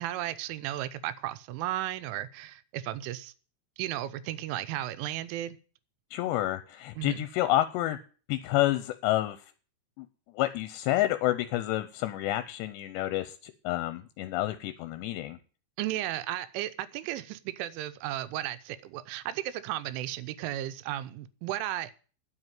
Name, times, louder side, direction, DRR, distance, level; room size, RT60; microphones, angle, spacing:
voice 1, 0.0-3.3 3.8-5.6 7.0-7.3 15.8-22.0, right 13 dB, 85° right, 13 dB, 3.2 m, -34 dB
voice 2, 6.1-8.0 8.3-9.4 10.0-10.1 10.3-15.4, left 15 dB, 80° left, 11 dB, 2.6 m, -29 dB
9.9 x 7.8 x 9.1 m, 0.40 s
omnidirectional pair, 5.5 m